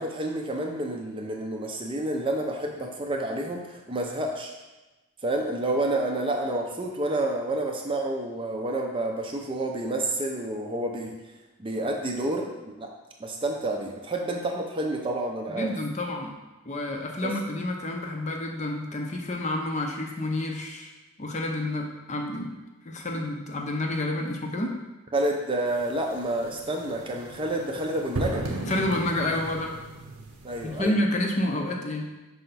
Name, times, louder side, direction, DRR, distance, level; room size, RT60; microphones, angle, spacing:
voice 1, 0.0-4.5 5.2-11.2 11.6-12.9 13.2-15.7 17.2-17.4 25.1-28.5 30.4-31.0, right 1 dB, 25° right, 1 dB, 0.5 m, -29 dB
voice 2, 15.5-16.4 16.7-20.9 21.2-22.6 22.8-24.8 28.7-29.8 30.6-32.1, left 1 dB, 30° left, 2 dB, 0.6 m, -29 dB
sound 1, 25.7-30.8, right 1 dB, 90° right, 0.8 m, -36 dB
5.6 x 4.5 x 4.0 m, 1.1 s
head